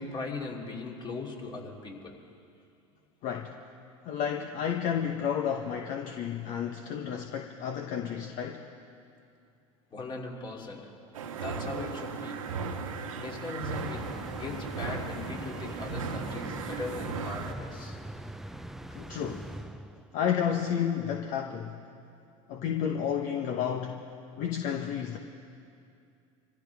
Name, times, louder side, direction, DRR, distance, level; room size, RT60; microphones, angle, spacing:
voice 1, 0.0-2.3 9.9-10.9 11.4-12.5 13.2-18.0, left 3 dB, 30° left, -1 dB, 2.8 m, -39 dB
voice 2, 3.2-3.6 4.0-8.6 18.9-19.5 20.1-21.9 22.5-24.0 24.4-25.2, left 8 dB, 50° left, 4 dB, 1.1 m, -31 dB
sound 1, 11.1-17.5, right 5 dB, 90° right, 1.5 m, -37 dB
sound 2, 13.6-20.3, right 1 dB, ahead, 0.5 m, -42 dB
25.5 x 15.0 x 3.5 m, 2.5 s
hypercardioid pair, 95°, 17 cm